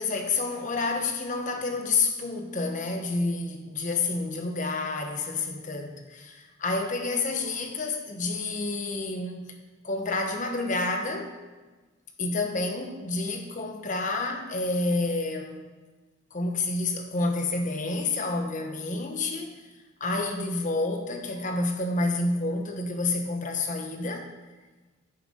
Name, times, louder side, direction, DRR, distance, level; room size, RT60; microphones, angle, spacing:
voice 1, 0.0-9.5 9.8-11.3 12.2-15.6 16.3-19.5 20.0-24.2, left 3 dB, 35° left, 4 dB, 1.0 m, -29 dB
9.6 x 6.8 x 5.1 m, 1.3 s
head